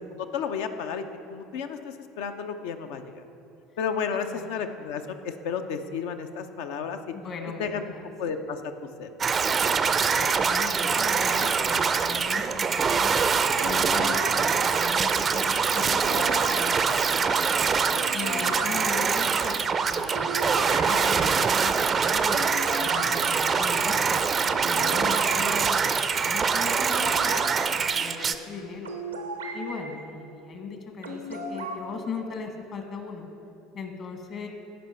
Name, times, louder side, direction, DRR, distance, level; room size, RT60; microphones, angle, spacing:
voice 1, 0.1-3.2 3.8-7.0 7.6-7.9 8.2-8.6 9.0-9.1, left 6 dB, 65° left, 7 dB, 0.6 m, -32 dB
voice 2, 4.3-4.6 7.1-8.1 10.2-13.2 13.6-17.4 18.1-22.4 22.8-24.3 24.6-28.9 29.5-33.3 33.7-34.5, left 4 dB, 45° left, 4 dB, 1.5 m, -38 dB
sound 1, 9.2-28.3, right 5 dB, 30° right, 0.5 m, -24 dB
sound 2, 13.6-29.9 31.0-31.8, right 1 dB, 85° right, 0.7 m, -38 dB
15.5 x 5.3 x 4.4 m, 2.7 s
hypercardioid pair, 70°, 0 cm